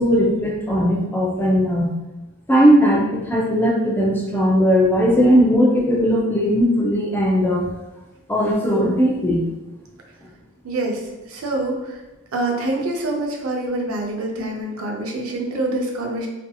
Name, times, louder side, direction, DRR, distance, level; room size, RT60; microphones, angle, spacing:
voice 1, 0.0-1.9 2.5-7.7 8.3-9.4, equal, 10° left, -3 dB, 0.4 m, -18 dB
voice 2, 10.6-11.0 11.3-12.0 12.3-16.3, right 2 dB, 85° right, 0 dB, 0.5 m, -25 dB
2.7 x 2.6 x 2.3 m, 1.1 s
head